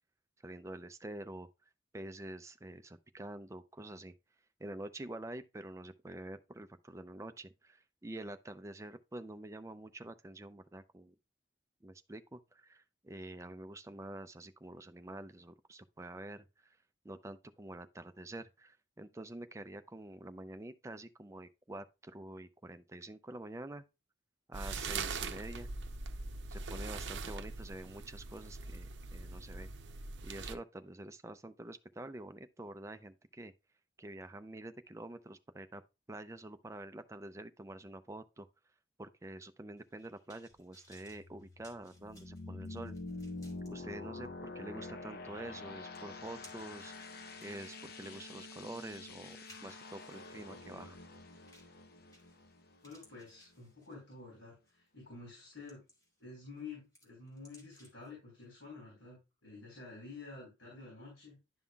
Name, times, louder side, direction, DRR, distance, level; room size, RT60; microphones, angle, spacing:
voice 1, 0.4-1.5 1.9-4.1 4.6-11.1 11.8-16.8 17.0-23.8 24.5-25.7 26.5-29.7 30.2-33.5 34.0-35.8 36.1-38.5 39.0-43.0 43.7-46.9 47.4-51.0, right 1 dB, 15° right, 0.4 m, -47 dB
sound 1, 24.5-30.5, right 4 dB, 65° right, 0.6 m, -42 dB
sound 2, 39.8-43.7 44.2-44.3 45.5-45.6 45.9-46.8 47.3-50.4 51.5-51.8 52.1-52.5 52.8-54.1 54.7-54.9 55.4-56.2 56.6-58.1 58.4-58.5, equal, 20° left, 2.3 m, -62 dB
sound 3, 40.9-53.6, left 3 dB, 50° left, 0.8 m, -47 dB
voice 2, 52.8-55.8 56.2-61.4, left 4 dB, 75° left, 4.0 m, -50 dB
11.0 x 5.4 x 2.3 m
head